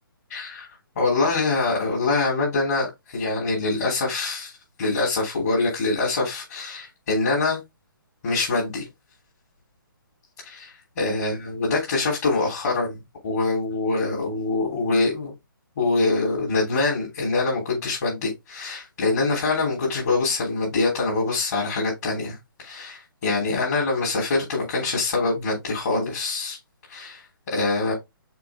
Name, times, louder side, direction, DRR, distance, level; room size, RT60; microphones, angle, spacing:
voice 1, 0.3-0.7 0.9-4.5 4.8-7.6 8.2-8.8 10.4-13.0 13.2-15.3 15.8-26.6 26.9-27.9, left 3 dB, 45° left, 3.4 m, -24 dB
6.0 x 4.6 x 3.5 m
figure-of-eight pair, 135°, 12 cm